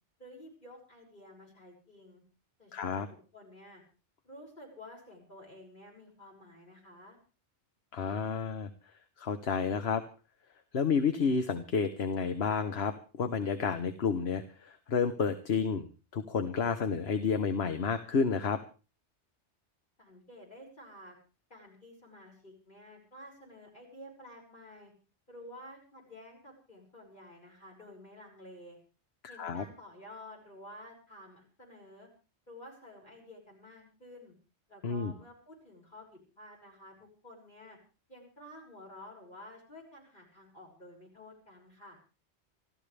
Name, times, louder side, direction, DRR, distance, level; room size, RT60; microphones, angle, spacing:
voice 1, 0.2-2.2 2.6-3.8 4.2-7.2 20.0-21.2 21.5-24.9 25.3-28.8 29.3-32.1 32.5-34.3 34.7-37.8 38.1-42.0, left 1 dB, 45° left, -1 dB, 6.8 m, -51 dB
voice 2, 2.7-3.1 7.9-8.7 9.2-10.0 10.7-15.9 16.1-18.6 29.3-29.6 34.8-35.1, left 5 dB, 65° left, 9 dB, 1.3 m, -30 dB
27.5 x 13.5 x 3.4 m, 0.35 s
omnidirectional pair, 1.1 m